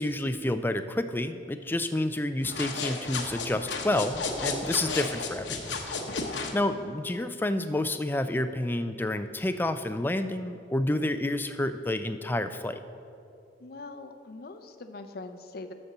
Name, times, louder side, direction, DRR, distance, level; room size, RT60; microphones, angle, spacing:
voice 1, 0.0-5.7 6.5-12.8, left 1 dB, 10° left, 10 dB, 0.3 m, -29 dB
sound 1, 2.4-6.6, left 4 dB, 85° left, 1.0 m, -33 dB
voice 2, 6.1-6.5 13.6-15.7, left 3 dB, 55° left, 8 dB, 0.6 m, -42 dB
13.0 x 4.3 x 6.6 m, 2.6 s
head